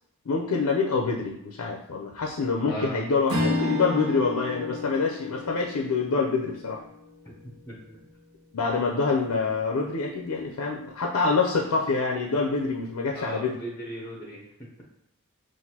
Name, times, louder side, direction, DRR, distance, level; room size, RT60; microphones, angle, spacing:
voice 1, 0.3-6.8 8.5-13.6, left 4 dB, 75° left, 1 dB, 0.5 m, -26 dB
voice 2, 2.6-3.0 7.7-8.0 13.1-14.5, right 1 dB, 15° left, -2 dB, 0.6 m, -37 dB
Strum, 3.3-7.9, left 2 dB, 70° right, 1.1 m, -32 dB
5.9 x 2.5 x 2.8 m, 0.79 s
head